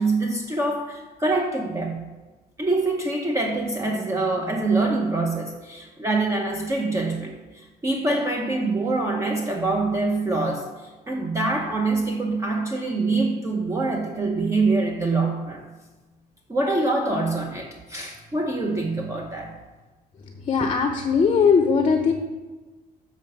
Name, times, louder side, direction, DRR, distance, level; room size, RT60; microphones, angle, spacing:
voice 1, 0.0-2.1 2.6-15.7 16.5-19.6, right 2 dB, 15° right, 1 dB, 0.8 m, -25 dB
voice 2, 20.5-22.1, left 5 dB, 30° left, 5 dB, 0.7 m, -19 dB
7.2 x 3.9 x 6.5 m, 1.2 s
cardioid pair, 110°, 17 cm